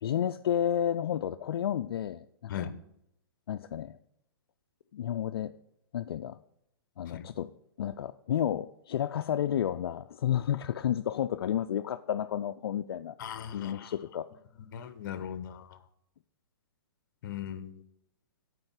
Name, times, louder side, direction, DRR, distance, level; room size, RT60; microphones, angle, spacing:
voice 1, 0.0-2.7 3.5-4.0 4.9-5.5 5.9-6.4 7.0-7.5 7.8-13.2 13.5-14.3, left 10 dB, 75° left, 9 dB, 0.4 m, -31 dB
voice 2, 13.2-13.9 14.7-15.8 17.2-17.8, left 9 dB, 55° left, 12 dB, 0.9 m, -38 dB
7.8 x 4.9 x 7.2 m, 0.76 s
hypercardioid pair, 155°, 13 cm